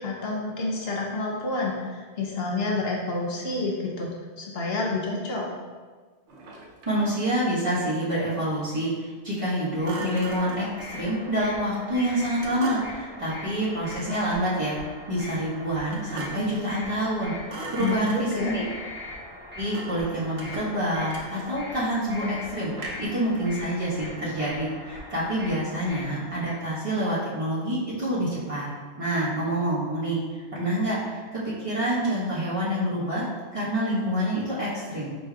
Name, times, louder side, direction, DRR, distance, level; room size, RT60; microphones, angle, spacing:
voice 1, 0.0-4.1 4.4-5.5 17.8-18.5, left 3 dB, 65° left, -2 dB, 0.9 m, -29 dB
Thump thud, 6.3-7.1 9.8-10.7 12.4-13.1 14.0-14.5 15.9-16.6 16.9-17.2 17.5-18.5 19.7-20.1 20.4-21.7 22.7-23.2, right 2 dB, 80° right, 1.0 m, -38 dB
voice 2, 6.8-14.8 15.1-18.6 19.5-28.7 29.0-35.2, right 1 dB, 30° right, -9 dB, 1.3 m, -27 dB
sound 1, 9.6-26.7, left 1 dB, 10° right, 0.9 m, -41 dB
5.0 x 4.1 x 2.3 m, 1.5 s
omnidirectional pair, 1.2 m